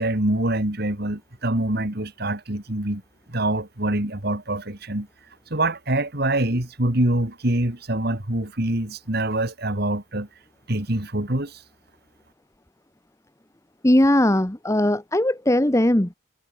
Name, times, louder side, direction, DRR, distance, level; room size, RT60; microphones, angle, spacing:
voice 1, 0.0-3.0 3.3-5.1 5.5-10.3 10.7-11.6, right 1 dB, 50° right, 2.8 m, -25 dB
voice 2, 13.8-16.1, left 1 dB, 15° left, 1.1 m, -19 dB
head